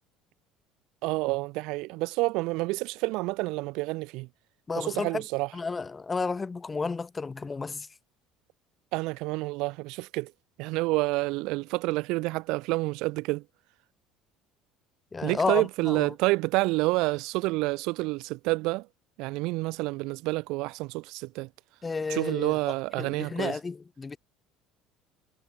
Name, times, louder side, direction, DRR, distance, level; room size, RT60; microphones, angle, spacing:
voice 1, 1.0-4.3 4.8-5.5 8.9-10.3 10.6-13.4 15.2-18.9 19.2-21.5 22.1-23.6, right 23 dB, 70° right, 1.1 m, -28 dB
voice 2, 4.7-5.2 5.5-7.9 15.1-16.1 21.8-22.6 23.0-24.2, left 4 dB, 20° left, 1.7 m, -32 dB
cardioid pair, 130°, 0 cm